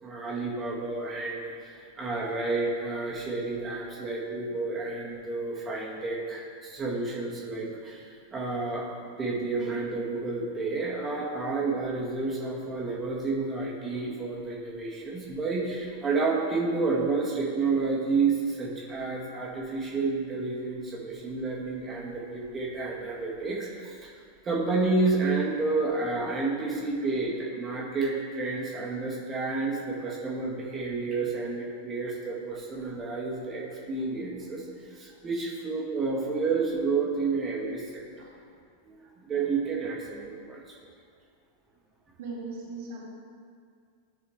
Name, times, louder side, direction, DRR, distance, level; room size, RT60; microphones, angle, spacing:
voice 1, 0.0-8.9 9.2-24.1 24.4-38.0 38.8-40.7, right 3 dB, 20° right, -4 dB, 1.8 m, -30 dB
voice 2, 42.2-43.0, right 3 dB, 55° right, -4 dB, 1.8 m, -38 dB
14.0 x 4.8 x 3.1 m, 2.1 s
figure-of-eight pair, 90°, 0 cm